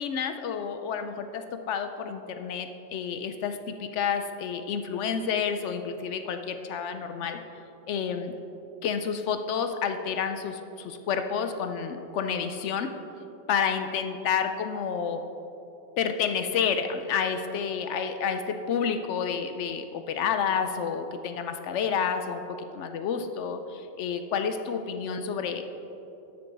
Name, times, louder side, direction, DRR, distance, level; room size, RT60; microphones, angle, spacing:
voice 1, 0.0-7.4 7.9-8.3 8.8-12.9 13.5-15.2 16.0-22.4 22.7-25.6, left 7 dB, 80° left, 8 dB, 0.9 m, -29 dB
13.0 x 6.9 x 4.7 m, 2.9 s
omnidirectional pair, 1.2 m